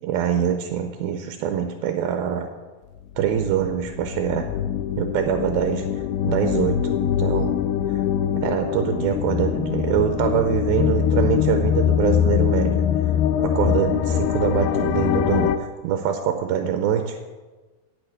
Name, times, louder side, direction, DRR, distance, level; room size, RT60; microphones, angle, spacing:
voice 1, 0.0-2.5 3.2-4.5 5.0-5.9 6.2-7.6 7.9-8.0 8.4-13.1 13.4-17.2, right 9 dB, 85° right, 6 dB, 2.1 m, -24 dB
sound 1, 3.0-15.6, left 9 dB, 80° left, 2.4 m, -23 dB
8.9 x 8.7 x 6.5 m, 1.3 s
omnidirectional pair, 5.0 m